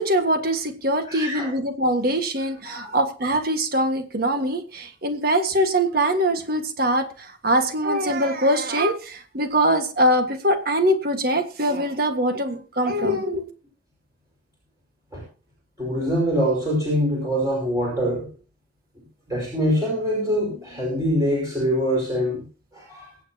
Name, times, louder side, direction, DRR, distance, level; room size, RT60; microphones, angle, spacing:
voice 1, 0.0-13.5, right 1 dB, 50° right, 1.7 m, -23 dB
voice 2, 1.0-1.5 2.7-3.0 15.1-15.2 15.8-18.3 19.3-22.4 22.7-23.1, equal, 20° right, 5.2 m, -24 dB
23.5 x 8.0 x 2.9 m
head